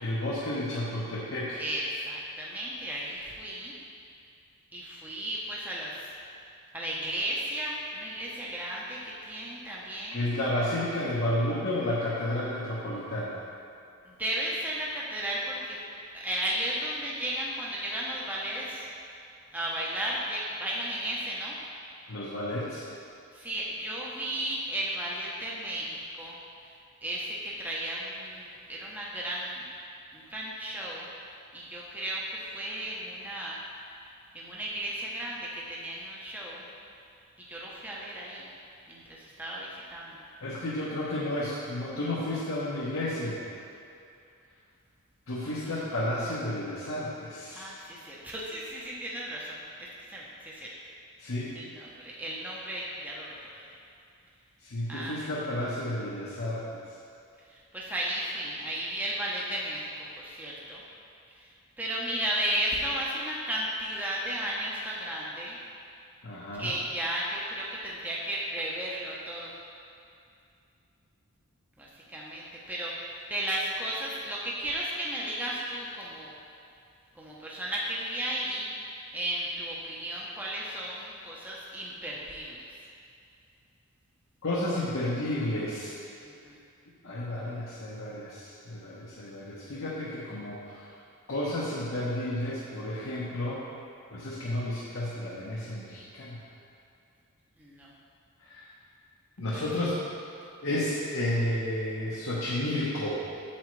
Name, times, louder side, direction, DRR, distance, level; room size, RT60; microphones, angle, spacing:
voice 1, 0.0-1.6 10.1-13.3 22.1-22.8 40.4-43.4 45.3-47.7 51.2-51.6 54.6-56.7 66.2-66.7 84.4-85.9 87.0-90.8 91.3-93.6 94.1-96.4 98.5-98.6 99.4-99.9 100.6-103.2, left 1 dB, 60° left, -7 dB, 1.0 m, -31 dB
voice 2, 1.6-3.7 4.7-6.2 6.7-10.3 14.0-15.8 16.1-18.9 19.5-21.6 23.3-26.7 27.0-29.6 30.1-31.1 31.5-33.6 34.3-36.7 37.4-38.5 38.9-40.3 45.4-45.7 47.5-50.7 51.5-53.7 54.9-55.4 57.5-60.8 61.3-65.6 66.5-69.6 71.8-76.3 77.1-78.7 79.1-82.7 86.2-86.6 97.6-97.9 99.5-99.9, right 1 dB, 10° right, -5 dB, 0.8 m, -34 dB
8.5 x 7.1 x 3.2 m, 2.5 s
head